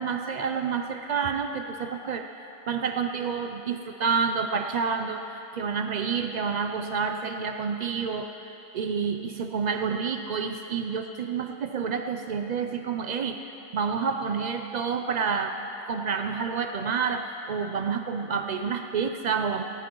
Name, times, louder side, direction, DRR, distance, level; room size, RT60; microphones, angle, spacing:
voice 1, 0.0-8.3 8.7-15.5 15.9-19.6, right 6 dB, 80° right, 5 dB, 0.3 m, -29 dB
18.5 x 16.0 x 3.0 m, 3.0 s
omnidirectional pair, 1.4 m